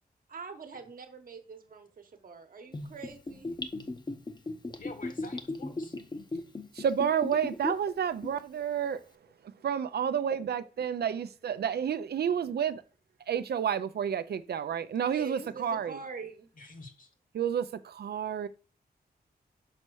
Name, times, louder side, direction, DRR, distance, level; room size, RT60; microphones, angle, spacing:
voice 1, 0.3-3.5 15.1-16.5, right 4 dB, 60° right, 1.1 m, -44 dB
Gurgling / Bathtub (filling or washing), 2.7-7.9 8.2-8.3, left 2 dB, 25° left, 0.7 m, -36 dB
voice 2, 4.8-6.0 16.6-17.1, left 3 dB, 55° left, 1.4 m, -49 dB
voice 3, 6.7-9.0 9.6-12.8 13.3-16.0 17.3-18.5, right 8 dB, 90° right, 0.5 m, -30 dB
5.5 x 4.3 x 6.2 m
wide cardioid pair, 155°, 16 cm